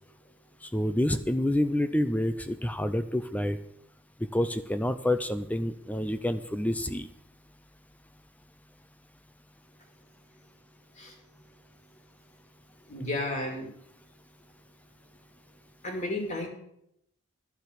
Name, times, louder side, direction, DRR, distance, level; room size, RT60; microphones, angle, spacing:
voice 1, 0.7-3.6 4.3-7.1, left 1 dB, 5° left, 11 dB, 0.4 m, -28 dB
voice 2, 12.9-13.7 15.8-16.5, left 1 dB, 30° left, 2 dB, 2.7 m, -32 dB
11.5 x 7.0 x 8.0 m, 0.75 s
head